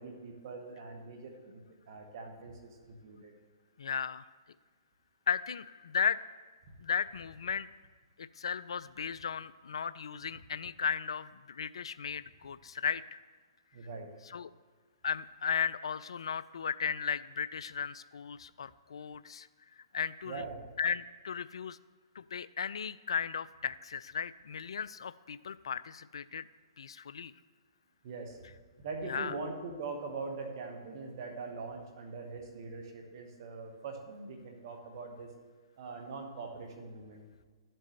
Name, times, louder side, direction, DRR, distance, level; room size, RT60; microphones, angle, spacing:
voice 1, 0.0-3.3 13.7-14.1 20.2-20.7 28.0-28.4 28.8-35.3 35.8-37.2, right 4 dB, 50° right, 3 dB, 1.7 m, -42 dB
voice 2, 3.8-4.2 5.3-6.2 6.8-7.7 8.2-13.2 14.3-14.5 15.0-19.5 19.9-20.4 20.8-21.8 22.2-26.4 26.8-27.3 29.1-29.3, left 7 dB, 75° left, 17 dB, 0.3 m, -35 dB
13.0 x 7.6 x 3.2 m, 1.5 s
hypercardioid pair, 125°, 3 cm